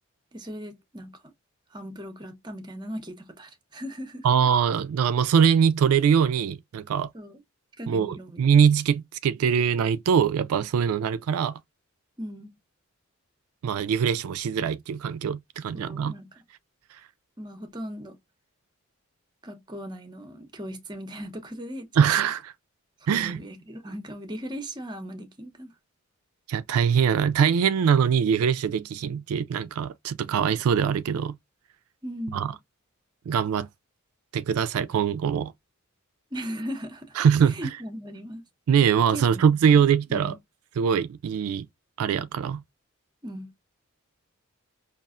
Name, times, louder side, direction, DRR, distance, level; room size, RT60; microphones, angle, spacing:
voice 1, 0.3-1.2 1.7-4.3 7.1-7.4 7.8-8.7 12.2-12.6 15.7-16.3 17.4-18.2 19.4-21.9 23.0-25.7 32.0-32.6 36.3-37.2 37.5-38.4 39.1-40.4 43.2-43.5, equal, 20° right, 0.7 m, -38 dB
voice 2, 4.2-7.1 7.9-11.6 13.6-16.1 16.9-17.0 22.0-22.5 23.1-23.4 26.5-31.4 32.3-32.5 33.3-33.7 34.3-35.5 37.2-37.7 38.7-40.3 40.8-41.7 42.0-42.6, right 7 dB, 80° right, 0.3 m, -22 dB
5.3 x 2.4 x 2.4 m
head